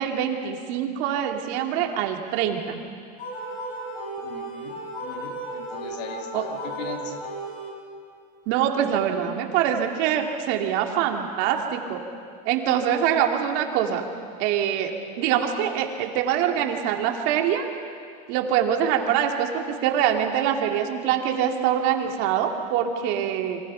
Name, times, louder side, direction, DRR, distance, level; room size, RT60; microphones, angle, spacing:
voice 1, 0.0-2.8 6.3-6.4 8.5-12.0 12.4-14.0 14.4-17.7 18.3-23.6, right 9 dB, 60° right, 3 dB, 2.8 m, -24 dB
sound 1, 3.2-8.1, right 1 dB, 40° left, 7.7 m, -35 dB
voice 2, 4.2-7.3, left 6 dB, 75° left, 4 dB, 2.7 m, -39 dB
28.5 x 25.5 x 5.8 m, 2.2 s
supercardioid pair, 125°, 21 cm